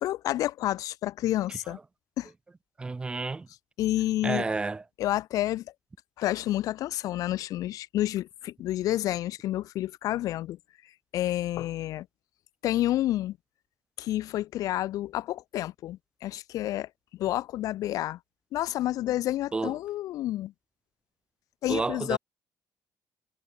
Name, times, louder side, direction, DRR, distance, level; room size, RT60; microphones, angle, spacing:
voice 1, 0.0-1.8 2.2-2.3 3.8-4.5 5.0-5.6 6.2-10.6 11.1-12.1 12.6-13.4 14.0-18.2 18.5-20.5 21.6-22.2, left 14 dB, 60° left, 0.4 m, -29 dB
voice 2, 2.8-3.5 4.2-4.8 19.5-19.7 21.7-22.2, right 3 dB, 15° right, 0.7 m, -30 dB
cardioid pair, 160°, 7 cm